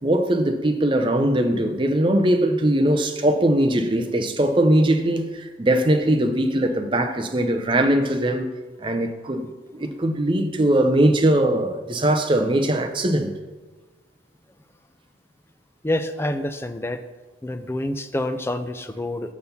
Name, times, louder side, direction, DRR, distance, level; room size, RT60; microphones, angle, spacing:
voice 1, 0.0-8.5 8.8-9.5 9.7-13.3, right 1 dB, 25° right, 0.6 m, -20 dB
voice 2, 15.8-17.0 17.4-19.3, left 1 dB, 10° left, 0.4 m, -27 dB
6.3 x 5.6 x 6.9 m
head